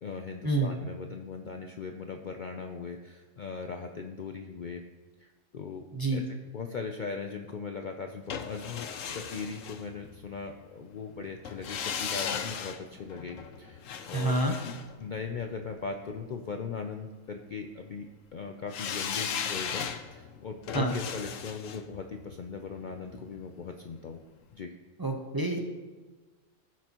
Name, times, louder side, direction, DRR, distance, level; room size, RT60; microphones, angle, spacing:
voice 1, 0.0-4.8 5.2-5.8 6.1-14.7 15.0-24.2 24.5-24.7, left 5 dB, 55° left, 4 dB, 0.6 m, -39 dB
sound 1, 8.3-10.4 11.5-15.7 18.7-23.7 24.0-24.1, left 7 dB, 90° left, 1.1 m, -37 dB
voice 2, 14.1-14.5 20.7-20.9 25.0-25.6, right 2 dB, 20° right, 1 dB, 0.8 m, -27 dB
16.0 x 6.1 x 3.0 m, 1.3 s
omnidirectional pair, 1.3 m